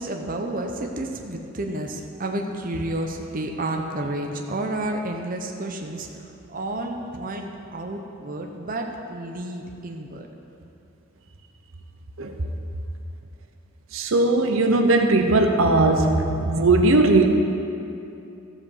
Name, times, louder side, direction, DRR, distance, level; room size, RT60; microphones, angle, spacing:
voice 1, 0.0-10.3, right 1 dB, 40° right, 2 dB, 0.7 m, -31 dB
voice 2, 13.9-17.3, right 2 dB, 70° right, 5 dB, 0.8 m, -18 dB
14.0 x 5.1 x 7.2 m, 2.7 s
head